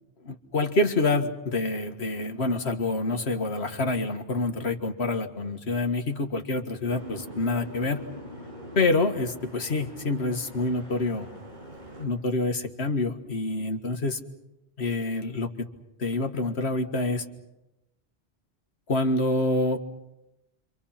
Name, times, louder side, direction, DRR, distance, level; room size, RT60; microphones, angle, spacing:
voice 1, 0.2-8.0 8.8-11.3 12.0-14.2 14.8-15.7 16.0-17.3 18.9-19.8, left 2 dB, 70° left, 6 dB, 2.0 m, -27 dB
Boat Water vehicle, 6.9-12.0, right 1 dB, 45° right, 6.0 m, -43 dB
29.5 x 26.0 x 5.8 m, 0.94 s
omnidirectional pair, 1.1 m